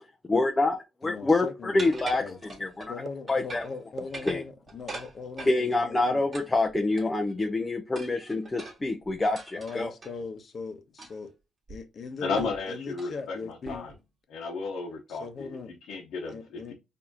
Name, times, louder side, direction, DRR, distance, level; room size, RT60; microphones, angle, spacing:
voice 1, 0.3-2.2 2.6-2.9 3.3-3.6 4.3-4.4 5.4-9.9, left 2 dB, 20° left, 0.6 m, -26 dB
voice 2, 1.0-1.9 2.2-2.4 2.9-6.2 9.5-11.3 11.7-13.9 15.1-15.7 16.3-16.7, left 4 dB, 50° left, 0.9 m, -40 dB
sound 1, 1.8-2.9 3.3-3.8 4.0-5.6 6.3-7.3 7.9-10.1 11.0-11.3 11.7-11.8 12.4-12.6 12.9-13.1 13.6-14.0, right 3 dB, 35° right, 1.8 m, -43 dB
sound 2, 2.1-2.2 3.0-3.1 4.0-4.1 4.9-5.0 5.8-5.9 6.7-6.8, right 7 dB, 55° right, 0.4 m, -39 dB
voice 3, 12.2-13.9 14.3-15.5 15.9-16.7, left 4 dB, 80° left, 1.0 m, -33 dB
4.7 x 2.8 x 2.8 m
cardioid pair, 90°, 0 cm